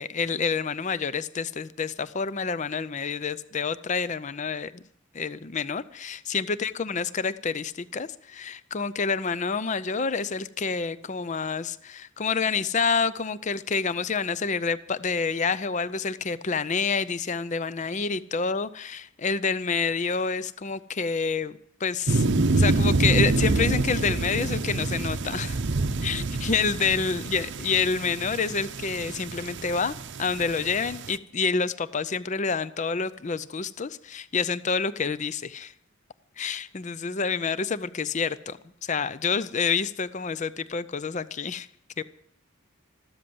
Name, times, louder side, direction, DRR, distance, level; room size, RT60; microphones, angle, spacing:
voice 1, 0.0-4.8 5.1-22.3 22.6-25.6 26.0-35.7 36.4-41.7 42.0-42.1, left 5 dB, 35° left, 0.5 m, -28 dB
sound 1, 22.1-31.2, right 2 dB, 55° right, 0.7 m, -26 dB
13.5 x 13.0 x 7.8 m
head